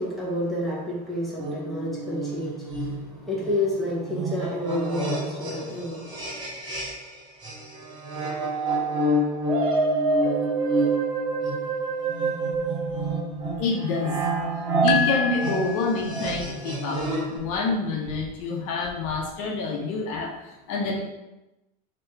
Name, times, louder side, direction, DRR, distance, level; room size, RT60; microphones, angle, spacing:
voice 1, 0.0-6.5, left 1 dB, ahead, -7 dB, 1.0 m, -30 dB
sound 1, 1.4-7.1 7.4-17.4, right 2 dB, 20° right, 1.2 m, -29 dB
sound 2, 9.5-13.7, right 3 dB, 75° right, 1.2 m, -26 dB
voice 2, 13.6-14.3 14.5-17.0 17.3-21.0, left 4 dB, 60° left, 0 dB, 0.9 m, -28 dB
sound 3, 14.9-16.4, left 8 dB, 85° left, 0.5 m, -28 dB
3.3 x 3.0 x 4.6 m, 0.98 s
supercardioid pair, 160°, 20 cm